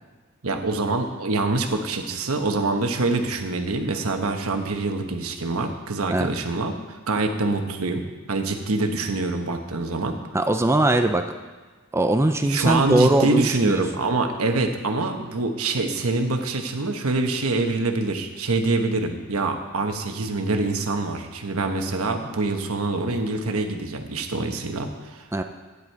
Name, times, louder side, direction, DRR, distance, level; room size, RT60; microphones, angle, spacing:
voice 1, 0.4-10.2 12.5-25.4, right 3 dB, 80° right, 5 dB, 1.1 m, -25 dB
voice 2, 10.3-11.3 11.9-13.8 25.3-25.4, right 1 dB, 10° right, 6 dB, 0.4 m, -21 dB
13.0 x 9.8 x 4.6 m, 1.3 s
head